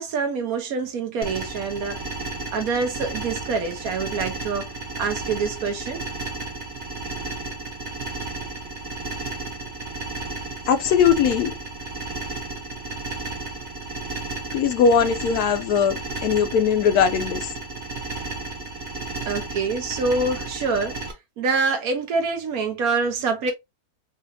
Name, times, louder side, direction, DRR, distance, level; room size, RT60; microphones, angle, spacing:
voice 1, 0.0-2.0 2.5-4.7 5.0-6.0 19.2-21.0 21.4-23.5, right 4 dB, 75° right, 1.2 m, -25 dB
sound 1, 1.2-21.1, right 3 dB, 45° right, 1.2 m, -33 dB
voice 2, 10.7-11.5 14.5-17.5, left 7 dB, 80° left, 1.1 m, -20 dB
4.1 x 2.4 x 2.6 m
omnidirectional pair, 1.6 m